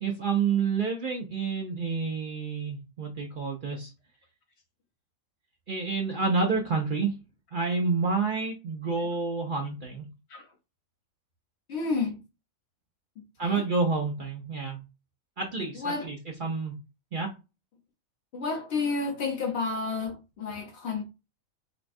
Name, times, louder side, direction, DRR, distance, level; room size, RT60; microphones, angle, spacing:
voice 1, 0.0-3.9 5.7-7.1 7.5-10.1 13.4-14.8 15.4-16.7 17.1-17.3, right 4 dB, 50° right, 0.7 m, -29 dB
voice 2, 11.7-12.2 13.4-13.6 15.7-16.1 18.3-21.0, left 4 dB, 55° left, 1.0 m, -31 dB
4.0 x 2.3 x 2.6 m
omnidirectional pair, 1.4 m